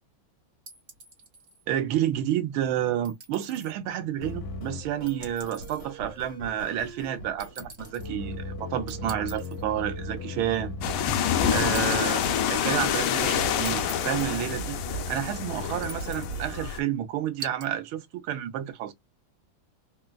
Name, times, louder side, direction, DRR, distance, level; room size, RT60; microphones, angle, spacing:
sound 1, 0.7-1.6 3.0-3.7 5.1-5.9 7.4-8.1 8.9-9.6 11.7-12.5 13.6-14.5 15.8-16.4 17.4-17.7, right 5 dB, 45° right, 1.6 m, -44 dB
voice 1, 1.7-10.7 11.5-14.8 15.1-18.9, right 11 dB, 75° right, 1.5 m, -30 dB
sound 2, 4.2-11.8, left 2 dB, 65° left, 1.6 m, -38 dB
sound 3, 10.8-16.8, left 8 dB, 85° left, 1.5 m, -27 dB
3.8 x 2.3 x 2.2 m
omnidirectional pair, 2.3 m